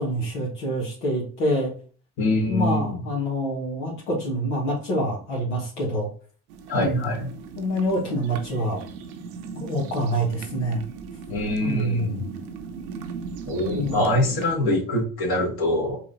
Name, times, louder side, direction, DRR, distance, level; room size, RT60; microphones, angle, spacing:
voice 1, 0.0-1.7 2.5-6.1 6.7-7.0 7.6-8.8 9.5-10.8 11.6-12.3 13.6-14.0, equal, 85° left, -5 dB, 1.6 m, -26 dB
voice 2, 2.2-3.0 6.7-7.3 11.3-12.2 13.4-16.0, left 1 dB, 55° left, -2 dB, 1.8 m, -24 dB
sound 1, 6.5-14.5, right 5 dB, 85° right, 0.7 m, -38 dB
4.8 x 2.7 x 3.7 m, 0.42 s
hypercardioid pair, 60°, 43 cm